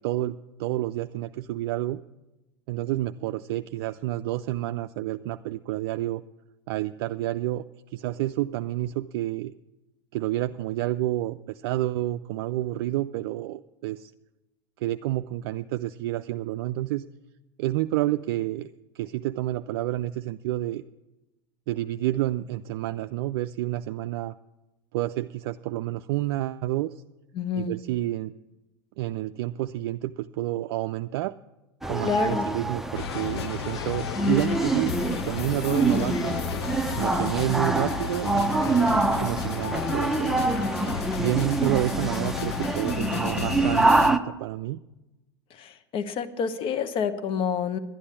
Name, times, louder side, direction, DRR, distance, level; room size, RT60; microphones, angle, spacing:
voice 1, 0.0-2.0 2.7-6.2 6.7-7.6 7.9-9.5 10.1-14.1 14.8-17.0 17.6-18.7 18.9-20.8 21.7-24.3 24.9-27.0 27.6-28.3 29.0-31.4 31.9-36.4 37.0-40.5 41.2-44.8, right 15 dB, 60° right, 9 dB, 0.4 m, -29 dB
voice 2, 27.3-27.7 32.0-32.5 45.5-47.8, left 7 dB, 40° left, 12 dB, 1.1 m, -28 dB
sound 1, 31.8-44.2, right 2 dB, ahead, 0.7 m, -26 dB
sound 2, 32.9-44.1, left 10 dB, 75° left, 0.4 m, -34 dB
11.0 x 9.8 x 8.5 m, 1.0 s
hypercardioid pair, 90°, 14 cm